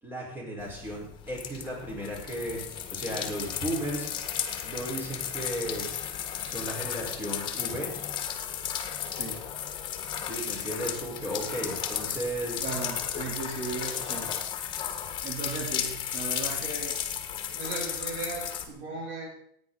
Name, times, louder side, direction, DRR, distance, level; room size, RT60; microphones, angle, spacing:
voice 1, 0.0-2.6 2.9-4.1 4.6-5.9 6.4-7.9 10.2-12.7, right 1 dB, 15° right, -3 dB, 5.3 m, -35 dB
sound 1, 0.6-18.6, left 9 dB, 35° left, 1.7 m, -34 dB
voice 2, 12.6-14.3 15.2-17.0 17.5-19.3, right 3 dB, 60° right, -1 dB, 3.5 m, -36 dB
15.5 x 9.7 x 4.2 m, 0.68 s
cardioid pair, 140°, 13 cm